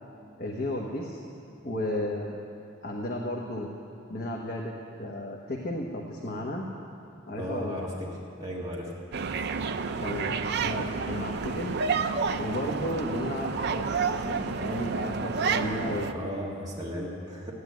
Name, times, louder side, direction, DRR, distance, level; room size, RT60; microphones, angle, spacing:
voice 1, 0.4-1.2 1.6-2.4 2.8-3.7 4.1-4.7 5.0-6.7 7.3-7.9 10.0-11.8 12.4-16.3, left 1 dB, 45° left, -1 dB, 1.2 m, -33 dB
voice 2, 7.3-8.1 8.4-8.9 16.1-17.5, equal, 20° right, -4 dB, 1.6 m, -35 dB
sound 1, 9.1-16.1, right 5 dB, 50° right, 0.5 m, -30 dB
14.5 x 9.7 x 9.4 m, 2.6 s
head